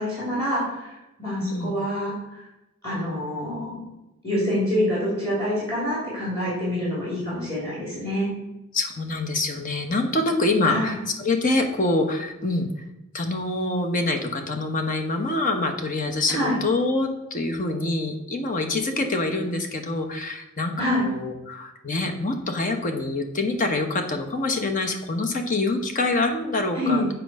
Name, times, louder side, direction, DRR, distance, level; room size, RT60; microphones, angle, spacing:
voice 1, 0.0-2.4 2.8-3.8 4.2-8.3 10.6-10.9 16.3-16.6 20.8-21.0 26.7-27.1, equal, 15° left, -7 dB, 3.0 m, -26 dB
voice 2, 1.4-1.7 8.7-12.7 13.1-27.0, left 2 dB, 40° left, 5 dB, 1.0 m, -25 dB
7.8 x 4.6 x 6.4 m, 0.95 s
head